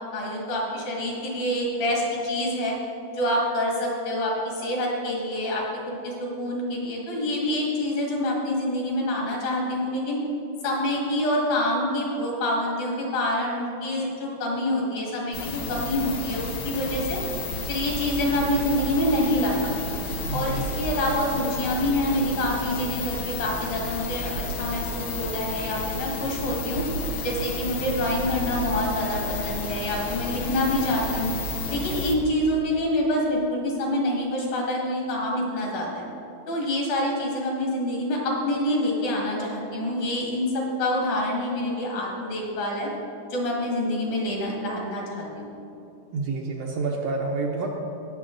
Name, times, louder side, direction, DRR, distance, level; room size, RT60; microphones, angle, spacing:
voice 1, 0.1-2.8 3.1-5.6 6.0-10.2 10.6-17.2 17.7-20.0 20.3-26.8 27.2-31.4 31.7-36.0 36.5-42.9 43.3-45.5, left 1 dB, 70° left, -2 dB, 3.6 m, -26 dB
sound 1, 15.3-32.2, left 2 dB, 90° left, 1.1 m, -32 dB
voice 2, 20.3-20.8 46.1-47.7, right 3 dB, 70° right, -1 dB, 1.7 m, -28 dB
19.0 x 7.0 x 3.9 m, 2.8 s
omnidirectional pair, 3.7 m